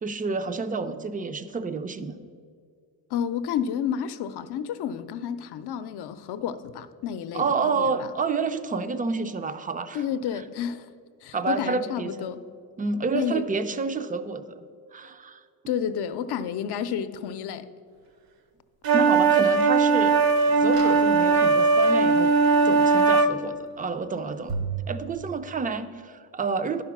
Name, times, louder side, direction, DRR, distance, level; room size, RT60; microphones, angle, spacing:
voice 1, 0.0-2.2 7.3-10.0 11.3-12.4 12.8-14.6 14.9-15.4 18.9-20.2 20.6-22.3 22.6-24.6 24.9-26.8, right 4 dB, 20° right, 0.4 m, -29 dB
voice 2, 3.1-8.1 9.9-10.9 11.2-12.4 13.1-13.5 15.7-17.7, left 8 dB, 70° left, 0.6 m, -30 dB
sound 1, 18.8-23.3, right 4 dB, 60° right, 0.7 m, -19 dB
sound 2, 19.5-19.6 20.6-21.6 24.5-24.8, right 5 dB, 90° right, 2.2 m, -33 dB
11.0 x 5.1 x 5.9 m
cardioid pair, 120°, 41 cm